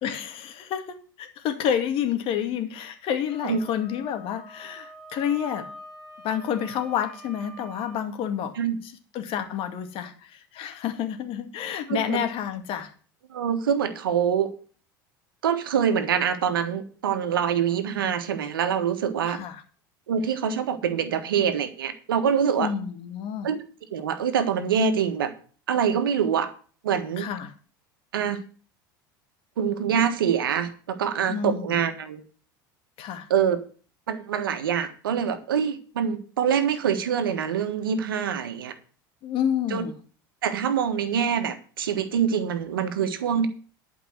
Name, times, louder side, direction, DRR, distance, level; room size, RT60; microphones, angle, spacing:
voice 1, 0.0-5.7 6.2-8.6 8.8-12.9 19.3-19.6 22.6-23.5 27.2-27.5 31.3-31.8 33.0-33.3 39.2-39.9, left 9 dB, 55° left, 7 dB, 2.3 m, -29 dB
Wind instrument woodwind instrument, 3.3-8.0, right 1 dB, ahead, 4.0 m, -45 dB
voice 2, 13.3-14.5 15.4-19.4 20.1-22.7 23.4-23.6 23.9-25.3 25.7-26.5 26.8-27.3 28.1-28.4 29.6-32.2 33.3-33.6 34.1-38.7 39.7-39.8 40.4-43.5, right 7 dB, 85° right, 9 dB, 1.5 m, -25 dB
11.5 x 5.3 x 7.8 m, 0.41 s
hypercardioid pair, 80°, 11 cm